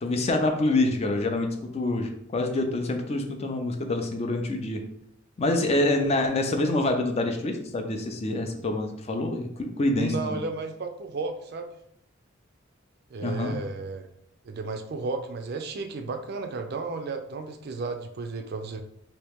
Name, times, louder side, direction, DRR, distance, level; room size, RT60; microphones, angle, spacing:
voice 1, 0.0-4.8 5.4-10.4 13.2-13.6, left 2 dB, 30° left, 4 dB, 0.4 m, -26 dB
voice 2, 10.0-11.7 13.1-14.1 14.4-18.8, right 3 dB, 55° right, 6 dB, 0.4 m, -33 dB
3.1 x 2.9 x 3.4 m, 0.73 s
head